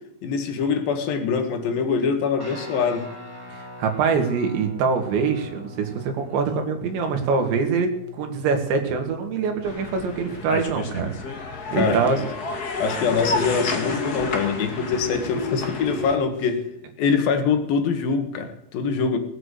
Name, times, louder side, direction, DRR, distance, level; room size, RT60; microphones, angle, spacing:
voice 1, 0.2-3.1 11.7-12.0 12.8-16.6 17.0-19.2, left 5 dB, 60° left, 7 dB, 3.2 m, -24 dB
Guitar, 2.4-12.2, left 3 dB, 5° right, 2.9 m, -42 dB
voice 2, 3.5-7.9 8.2-11.1 11.7-12.2, right 5 dB, 75° right, 5 dB, 4.0 m, -24 dB
sound 1, 9.6-16.1, left 3 dB, 85° left, 0.8 m, -30 dB
19.5 x 8.1 x 8.2 m, 0.81 s
omnidirectional pair, 5.2 m